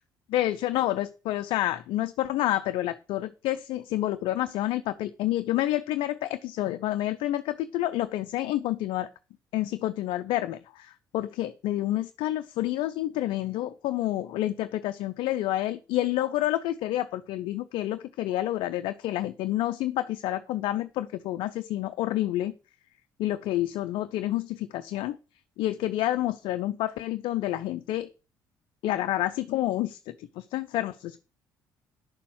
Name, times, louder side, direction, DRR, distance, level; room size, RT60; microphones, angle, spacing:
voice 1, 0.3-9.1 9.5-22.5 23.2-25.2 25.6-28.1 28.8-31.2, left 14 dB, 60° left, 0.6 m, -29 dB
10.5 x 6.8 x 6.3 m
figure-of-eight pair, 50°, 10 cm